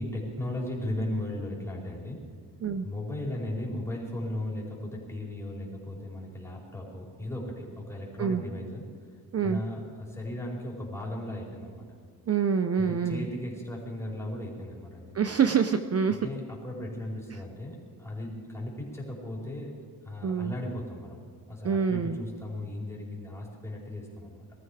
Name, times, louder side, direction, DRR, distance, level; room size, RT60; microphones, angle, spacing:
voice 1, 0.0-2.2 2.8-8.8 9.4-11.8 12.7-15.1 16.2-19.8 20.0-24.4, left 1 dB, 5° left, -3 dB, 4.6 m, -36 dB
voice 2, 12.3-13.3 15.1-16.3 17.3-17.4 20.2-20.5 21.6-22.2, right 6 dB, 40° right, 9 dB, 0.6 m, -26 dB
21.0 x 14.0 x 4.9 m, 2.1 s
wide cardioid pair, 125°, 37 cm